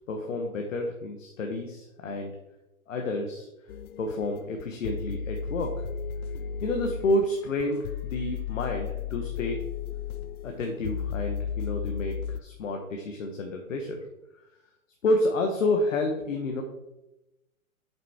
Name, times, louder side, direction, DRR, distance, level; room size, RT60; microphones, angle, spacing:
voice 1, 0.1-2.3 2.9-3.5 4.0-5.7 6.6-9.6 10.4-12.1 12.4-14.0 15.0-16.6, left 2 dB, 60° left, 2 dB, 1.2 m, -29 dB
sound 1, 3.7-12.4, left 7 dB, 85° left, 0.6 m, -34 dB
7.4 x 5.8 x 3.5 m, 0.95 s
hypercardioid pair, 155°, 43 cm